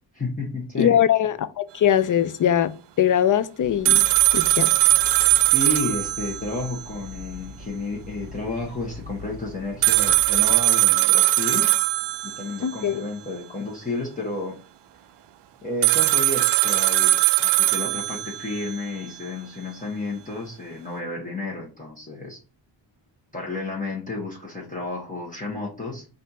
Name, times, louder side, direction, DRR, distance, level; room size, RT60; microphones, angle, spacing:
voice 1, 0.1-1.0 5.5-11.7 12.2-14.6 15.6-22.4 23.3-26.1, left 3 dB, 15° left, 1.1 m, -31 dB
voice 2, 0.8-2.7 3.0-4.0 4.3-4.7 12.6-13.0, left 10 dB, 45° left, 0.4 m, -21 dB
sound 1, 3.6-10.6, left 2 dB, 40° right, 1.3 m, -42 dB
sound 2, 3.9-6.9 7.2-7.3 9.8-12.8 15.8-18.8, right 16 dB, 60° right, 0.5 m, -20 dB
4.2 x 2.6 x 4.1 m
cardioid pair, 90°, 47 cm